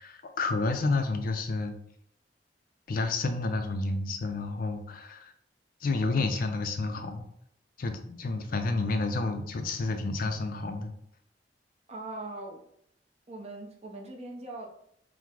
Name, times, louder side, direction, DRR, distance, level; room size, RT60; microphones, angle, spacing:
voice 1, 0.0-1.8 2.9-5.3 5.8-7.3 7.8-10.9, left 3 dB, 50° left, 7 dB, 0.4 m, -30 dB
voice 2, 11.9-12.6 13.3-14.7, right 2 dB, 35° right, 1 dB, 0.7 m, -40 dB
4.5 x 2.1 x 3.6 m, 0.72 s
head